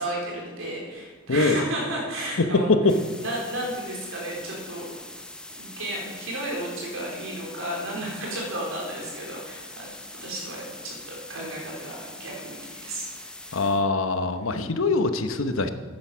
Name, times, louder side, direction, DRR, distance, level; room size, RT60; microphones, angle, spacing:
voice 1, 0.0-2.7 3.2-4.9 5.6-9.9 10.1-13.6, right 1 dB, 85° right, -2 dB, 3.8 m, -33 dB
voice 2, 1.3-1.6 2.4-3.0 13.5-15.7, left 3 dB, 80° left, 9 dB, 0.9 m, -23 dB
sound 1, 2.9-13.8, left 1 dB, 5° left, 0.8 m, -43 dB
10.0 x 9.6 x 6.2 m, 1.4 s
head